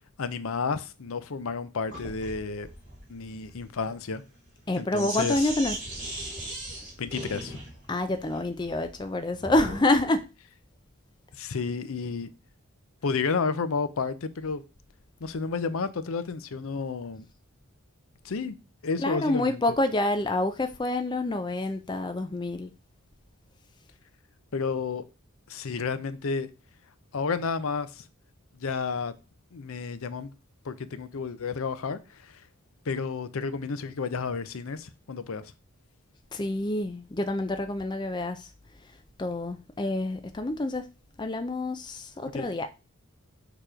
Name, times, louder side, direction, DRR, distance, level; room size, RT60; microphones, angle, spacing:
voice 1, 0.2-2.7 3.1-4.2 4.8-5.5 7.0-7.6 11.4-12.3 13.0-14.6 15.2-17.3 18.2-18.6 18.8-19.6 24.5-25.0 25.5-26.5 27.1-28.0 28.5-29.1 29.5-30.3 30.6-32.4 32.9-35.5 42.3-42.7, left 5 dB, 65° left, 0.6 m, -31 dB
Sink (filling or washing), 1.9-9.9, right 1 dB, 35° right, 2.6 m, -39 dB
voice 2, 4.7-5.8 7.9-10.2 19.0-22.7 36.3-38.4 39.2-40.8 41.2-42.7, left 2 dB, 20° left, 0.4 m, -27 dB
6.7 x 3.0 x 4.9 m
head